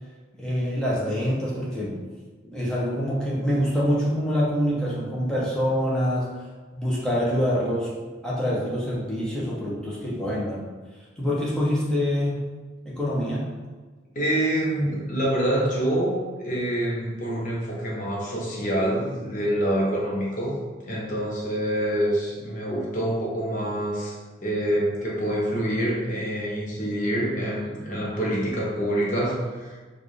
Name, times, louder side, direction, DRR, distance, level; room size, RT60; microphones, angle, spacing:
voice 1, 0.4-1.9 2.5-6.3 6.7-7.9 8.2-10.6 11.2-12.4 12.8-13.5, equal, 5° left, -7 dB, 0.8 m, -25 dB
voice 2, 14.1-20.6 20.9-24.1 24.4-29.8, right 1 dB, 40° left, -4 dB, 0.8 m, -26 dB
4.5 x 2.4 x 3.2 m, 1.4 s
head